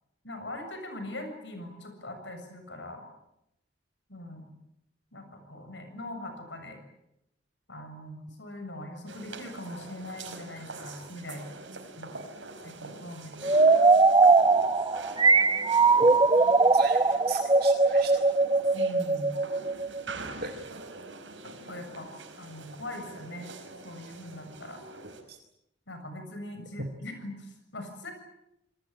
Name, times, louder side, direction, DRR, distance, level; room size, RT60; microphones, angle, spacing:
voice 1, 0.2-3.0 4.1-4.5 5.1-6.8 7.7-11.5 12.0-12.2 12.6-13.5 18.7-19.4 21.4-22.1 22.4-23.5 23.8-24.8 25.9-28.1, left 1 dB, 75° left, 6 dB, 7.2 m, -41 dB
sound 1, 9.1-25.2, right 3 dB, 80° right, 4.9 m, -45 dB
sound 2, 13.4-20.1, right 3 dB, 25° right, 1.2 m, -21 dB
voice 2, 16.7-18.2 20.4-20.5 25.3-25.4 26.8-26.9, right 3 dB, 55° right, 3 dB, 2.2 m, -37 dB
27.0 x 20.5 x 8.7 m, 0.84 s
head